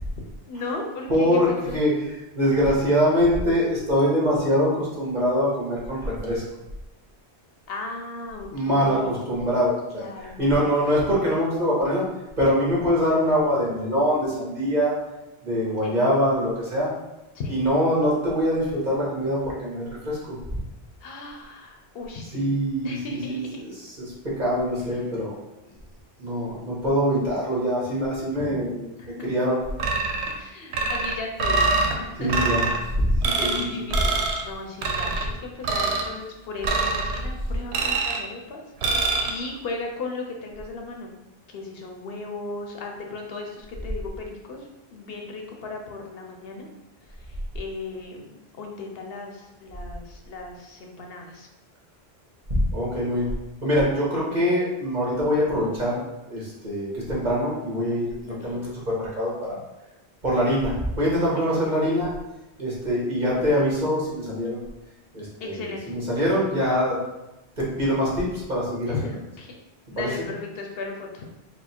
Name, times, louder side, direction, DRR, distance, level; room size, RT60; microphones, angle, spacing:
voice 1, 0.5-1.8 7.7-9.2 9.9-10.7 15.8-16.0 17.3-17.7 21.0-22.5 22.8-23.6 29.0-29.3 30.3-31.6 32.0-32.3 33.3-41.1 41.5-46.7 47.5-51.5 58.3-58.6 61.3-61.5 65.4-65.9 68.9-69.6 69.9-71.3, left 3 dB, 70° left, 1 dB, 0.8 m, -36 dB
voice 2, 1.1-6.4 8.5-12.0 12.4-15.0 15.4-16.9 17.5-20.4 22.3-25.3 26.2-29.6 32.2-32.7 32.9-33.1 33.4-33.6 52.7-53.3 53.6-56.0 56.3-59.6 60.2-62.1 62.6-64.6 65.1-67.0 67.6-69.2 69.9-70.3, equal, 45° right, -6 dB, 1.5 m, -24 dB
sound 1, 29.8-30.4 30.7-31.9 32.3-32.8 33.2-33.6 33.9-34.4 34.8-35.3 35.6-36.1 36.6-37.2 37.7-38.3 38.8-39.3, right 3 dB, 90° right, 0.9 m, -24 dB
4.2 x 2.1 x 4.3 m, 0.97 s
omnidirectional pair, 1.1 m